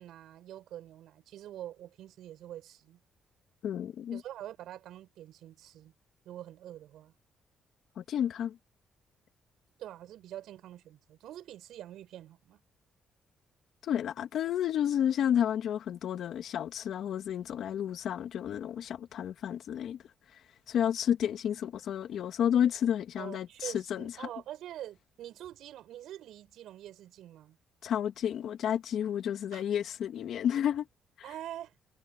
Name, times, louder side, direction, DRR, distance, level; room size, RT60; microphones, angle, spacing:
voice 1, 0.0-3.0 4.1-5.9 6.2-7.1 9.8-12.6 23.2-27.6 29.5-29.6 31.2-31.7, right 12 dB, 80° right, 6.4 m, -45 dB
voice 2, 3.6-4.2 8.0-8.6 13.8-20.0 20.7-24.1 27.8-30.9, left 9 dB, 70° left, 2.7 m, -31 dB
cardioid pair, 90°, 0 cm